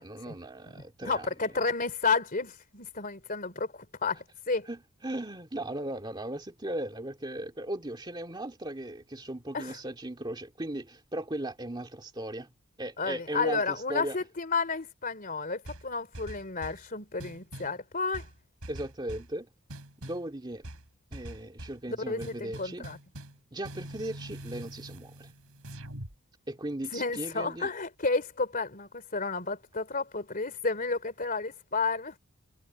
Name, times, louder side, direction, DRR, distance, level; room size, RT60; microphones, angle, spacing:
voice 1, 0.0-1.3 4.7-12.5 12.8-14.2 18.7-19.5 20.0-20.6 21.1-22.9 23.5-25.3 26.5-27.7, right 1 dB, 20° right, 2.2 m, -37 dB
voice 2, 1.0-4.7 9.5-9.8 13.0-18.3 21.9-23.0 26.9-32.2, left 4 dB, 40° left, 3.1 m, -31 dB
sound 1, 15.7-16.9 17.2-17.8 18.1-19.3 19.7-20.3 20.6-21.8 22.2-23.4 23.6-26.2, right 1 dB, 75° right, 4.3 m, -44 dB
head